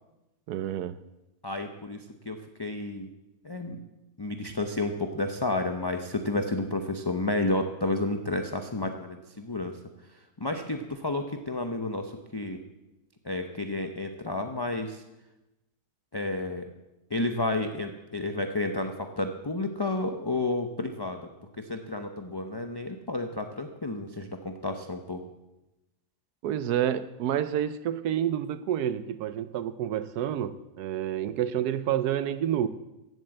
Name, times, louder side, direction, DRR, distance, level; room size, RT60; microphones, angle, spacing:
voice 1, 0.5-0.9 26.4-32.7, right 10 dB, 80° right, 13 dB, 1.2 m, -29 dB
voice 2, 1.4-3.1 3.4-3.8 4.2-9.8 10.4-12.6 13.2-15.0 16.1-16.7 17.1-21.3 21.6-25.2, left 2 dB, 30° left, 5 dB, 0.4 m, -31 dB
15.5 x 7.7 x 7.7 m, 1.0 s
omnidirectional pair, 1.7 m